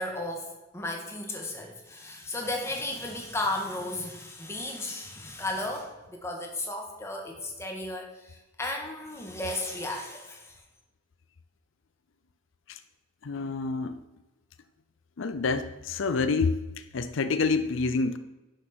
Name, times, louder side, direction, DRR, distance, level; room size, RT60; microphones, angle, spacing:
voice 1, 0.0-10.5, left 2 dB, 15° left, 1.7 m, -34 dB
voice 2, 13.2-14.0 15.2-18.2, left 4 dB, 75° left, 0.5 m, -28 dB
10.5 x 6.5 x 6.1 m
head